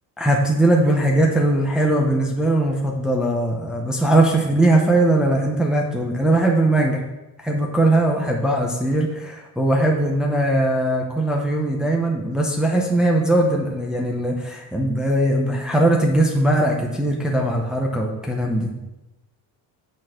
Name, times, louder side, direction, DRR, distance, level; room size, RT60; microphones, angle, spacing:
voice 1, 0.2-7.0 7.4-18.8, right 1 dB, ahead, -1 dB, 0.6 m, -20 dB
6.7 x 4.2 x 6.2 m, 1.0 s
cardioid pair, 160°, 39 cm